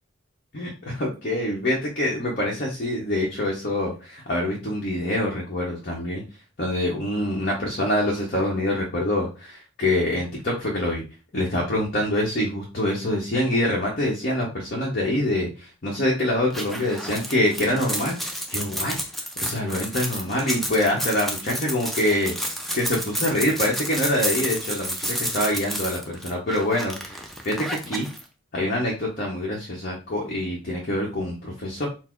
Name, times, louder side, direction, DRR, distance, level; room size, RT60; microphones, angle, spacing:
voice 1, 0.5-6.2 6.6-11.0 11.3-22.3 22.7-28.1 28.5-31.9, left 1 dB, 45° left, -2 dB, 0.8 m, -25 dB
sound 1, 16.5-28.2, equal, ahead, 0.4 m, -30 dB
4.1 x 2.0 x 4.4 m, 0.32 s
head